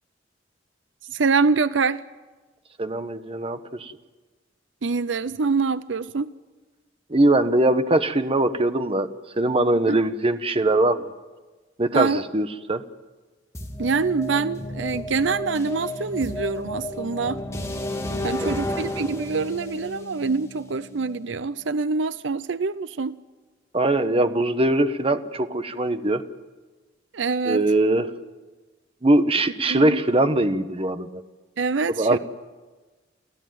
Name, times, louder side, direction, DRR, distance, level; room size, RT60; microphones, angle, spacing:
voice 1, 1.0-2.0 4.8-6.3 9.9-10.0 11.9-12.2 13.8-17.4 18.2-23.2 27.1-27.6 29.7-30.0 31.6-32.2, right 4 dB, 75° right, 15 dB, 0.6 m, -25 dB
voice 2, 2.8-3.9 7.1-9.1 9.4-11.1 11.8-12.8 18.2-18.6 23.7-26.2 27.5-28.1 29.0-31.2 32.0-32.2, right 2 dB, 30° right, 10 dB, 1.1 m, -21 dB
sound 1, 13.5-21.4, left 1 dB, 15° left, 2.4 m, -32 dB
29.0 x 14.5 x 9.3 m, 1.3 s
head